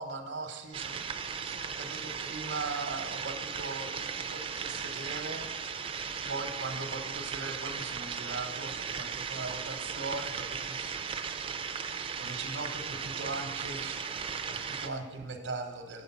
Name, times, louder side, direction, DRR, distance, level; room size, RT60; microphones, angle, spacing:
voice 1, 0.0-5.5 6.3-10.9 12.2-14.0 14.5-16.0, right 3 dB, 85° right, 5 dB, 0.9 m, -39 dB
sound 1, 0.7-14.9, right 6 dB, 30° right, 0.4 m, -37 dB
8.3 x 5.0 x 7.1 m, 1.2 s
head